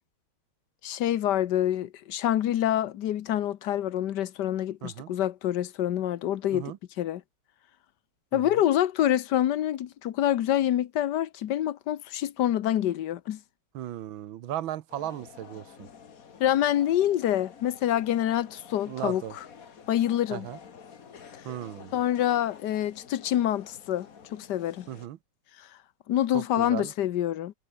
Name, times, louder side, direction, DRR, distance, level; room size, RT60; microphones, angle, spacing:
voice 1, 0.8-7.2 8.3-13.4 16.4-19.2 19.9-20.5 21.9-24.8 26.1-27.5, left 11 dB, 65° left, 1.4 m, -26 dB
voice 2, 4.8-5.1 6.5-6.8 8.3-8.6 13.7-15.9 18.9-19.3 20.3-20.6 21.4-21.9 24.9-25.2 26.3-26.9, right 12 dB, 75° right, 1.7 m, -36 dB
sound 1, 14.9-25.1, left 7 dB, 45° left, 1.8 m, -50 dB
omnidirectional pair, 2.2 m